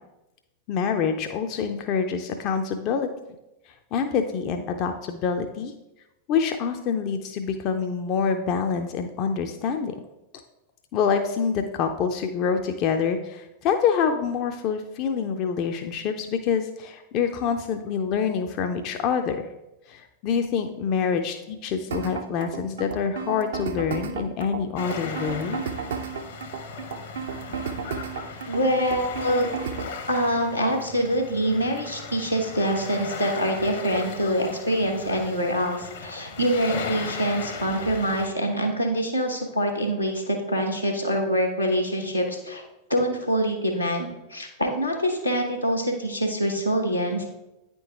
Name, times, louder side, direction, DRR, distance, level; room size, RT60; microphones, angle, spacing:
voice 1, 0.7-3.1 3.9-5.7 6.3-10.0 10.9-19.4 19.9-25.6 29.8-29.9, left 6 dB, 40° left, 5 dB, 0.5 m, -26 dB
sound 1, 21.9-29.9, right 6 dB, 65° right, 0.6 m, -33 dB
sound 2, 24.8-38.3, left 4 dB, 60° left, 0.9 m, -37 dB
voice 2, 28.5-29.5 30.1-42.6 42.9-47.2, equal, 90° left, 0 dB, 1.1 m, -25 dB
9.2 x 3.8 x 3.6 m, 0.96 s
figure-of-eight pair, 90°, 0 cm